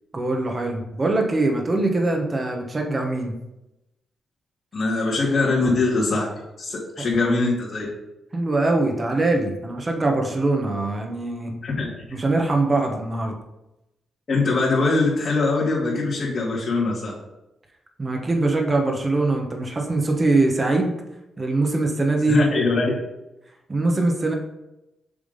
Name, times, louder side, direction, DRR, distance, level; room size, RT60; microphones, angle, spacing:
voice 1, 0.1-3.4 8.3-11.5 12.1-13.4 18.0-21.0 21.4-22.5 23.7-24.4, right 2 dB, 25° right, 2 dB, 1.2 m, -22 dB
voice 2, 4.7-6.3 6.6-7.8 11.6-11.9 14.3-17.1 22.3-23.0, left 3 dB, 50° left, -9 dB, 2.5 m, -22 dB
7.1 x 3.6 x 5.3 m, 0.93 s
cardioid pair, 95°, 0 cm